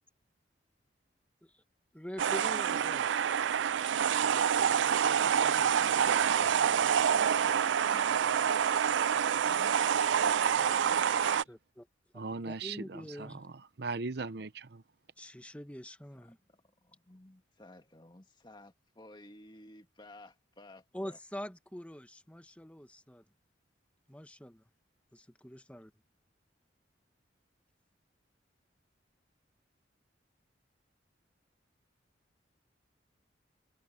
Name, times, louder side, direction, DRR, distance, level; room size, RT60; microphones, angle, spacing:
voice 1, 1.9-3.1 4.8-5.7 6.0-6.6 11.5-11.9 12.4-13.4 15.2-16.4 20.9-23.2 24.1-24.6 25.1-25.9, equal, 5° left, 1.3 m, -45 dB
sound 1, 2.2-11.4, right 8 dB, 75° right, 0.4 m, -27 dB
voice 2, 6.4-9.8 10.1-10.2 10.5-11.5 16.1-21.2, left 1 dB, 25° left, 1.9 m, -55 dB
voice 3, 12.1-13.4 13.8-14.8, right 3 dB, 55° right, 0.7 m, -38 dB
head